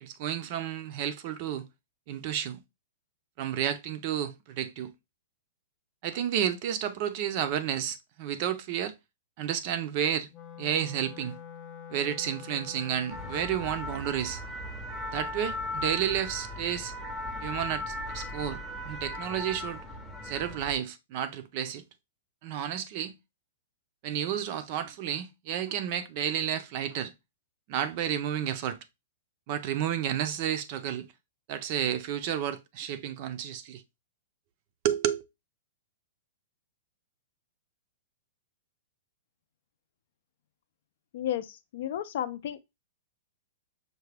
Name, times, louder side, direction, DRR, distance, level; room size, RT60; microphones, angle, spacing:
voice 1, 0.0-1.7 2.1-2.6 3.4-4.9 6.0-8.9 9.4-10.3 10.6-11.4 11.9-14.4 15.1-16.9 17.4-19.8 20.2-21.8 22.4-23.1 24.0-27.1 27.7-28.8 29.5-31.1 31.5-33.8 34.8-35.2, right 10 dB, 40° right, 0.5 m, -31 dB
Wind instrument woodwind instrument, 10.3-13.7, left 7 dB, 25° left, 0.9 m, -45 dB
sound 1, 13.1-20.8, left 1 dB, ahead, 0.6 m, -37 dB
voice 2, 41.1-42.6, left 11 dB, 55° left, 0.4 m, -33 dB
5.7 x 2.2 x 3.3 m
hypercardioid pair, 155°, 0 cm